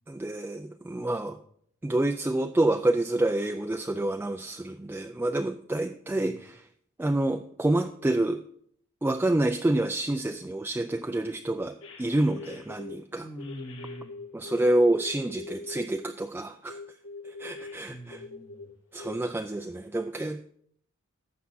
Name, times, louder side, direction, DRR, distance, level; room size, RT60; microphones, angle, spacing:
voice 1, 0.1-1.4 1.8-6.6 7.0-8.4 9.0-13.3 14.3-16.8 17.2-18.2 18.9-20.4, right 1 dB, 10° right, 7 dB, 0.3 m, -28 dB
voice 2, 0.9-1.3 5.8-6.4 13.2-14.2 17.9-18.7, equal, 10° left, 7 dB, 0.9 m, -44 dB
sound 1, 11.8-13.0 13.4-16.1 16.7-18.7 19.0-19.2, left 3 dB, 65° left, 1.9 m, -43 dB
12.0 x 7.4 x 4.2 m, 0.64 s
head